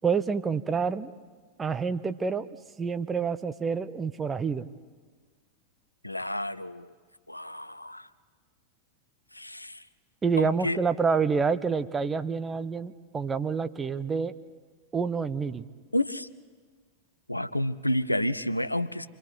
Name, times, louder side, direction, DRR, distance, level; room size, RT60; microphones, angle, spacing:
voice 1, 0.0-1.1 1.6-2.5 2.8-4.7 10.2-14.3 14.9-15.7, right 5 dB, 15° right, 11 dB, 0.8 m, -28 dB
voice 2, 6.0-6.9 7.3-8.1 9.3-9.9 10.4-10.8 15.9-16.3 17.3-19.1, left 1 dB, 85° left, 14 dB, 0.6 m, -30 dB
28.5 x 24.0 x 4.8 m, 1.5 s
figure-of-eight pair, 90°, 0 cm